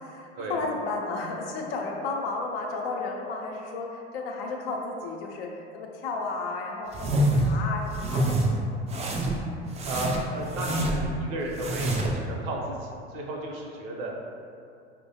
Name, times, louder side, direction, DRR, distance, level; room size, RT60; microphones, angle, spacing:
voice 1, 0.0-8.7, left 3 dB, 55° left, 0 dB, 0.6 m, -33 dB
sound 1, 6.9-7.5 7.9-8.5 8.9-9.4 9.8-11.1 11.5-12.2, right 1 dB, 20° right, 0.4 m, -26 dB
voice 2, 9.8-14.1, right 1 dB, 55° right, -1 dB, 0.7 m, -34 dB
4.6 x 2.1 x 2.7 m, 2.5 s
hypercardioid pair, 85°, 35 cm